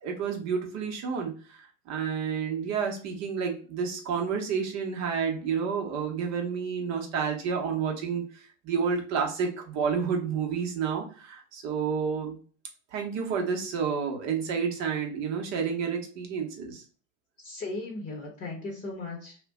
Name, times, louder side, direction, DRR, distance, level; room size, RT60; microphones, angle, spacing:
voice 1, 0.0-1.6 1.9-12.4 12.9-16.8, right 6 dB, 45° right, 1.0 m, -30 dB
voice 2, 17.4-19.4, left 2 dB, 20° left, 0.9 m, -37 dB
2.4 x 2.2 x 3.5 m
hypercardioid pair, 95°, 38 cm